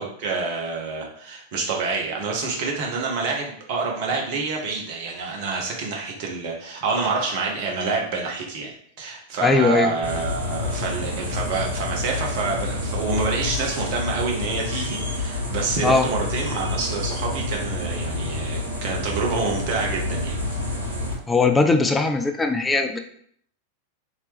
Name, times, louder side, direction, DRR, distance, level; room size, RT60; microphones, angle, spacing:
voice 1, 0.0-20.7, right 4 dB, 45° right, -1 dB, 0.9 m, -27 dB
voice 2, 9.4-9.9 15.8-16.1 21.3-23.0, left 3 dB, 10° left, 5 dB, 0.4 m, -19 dB
sound 1, 10.0-21.1, left 2 dB, 75° right, 1.1 m, -28 dB
3.0 x 2.8 x 3.4 m, 0.65 s
figure-of-eight pair, 90°, 0 cm